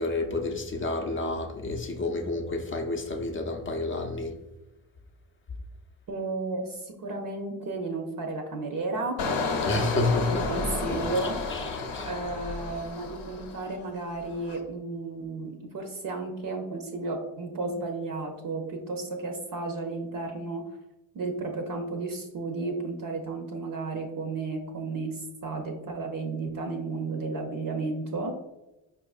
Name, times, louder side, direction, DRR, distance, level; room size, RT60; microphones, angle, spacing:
voice 1, 0.0-4.4 9.6-10.5 11.5-12.1, left 2 dB, 30° left, 0.5 m, -30 dB
voice 2, 6.1-9.3 10.3-11.4 12.0-20.7 21.1-28.4, right 3 dB, 50° right, 0.6 m, -33 dB
Engine, 9.2-13.8 14.2-14.6, left 3 dB, 70° left, 0.7 m, -31 dB
4.7 x 2.5 x 2.3 m
supercardioid pair, 55°, 44 cm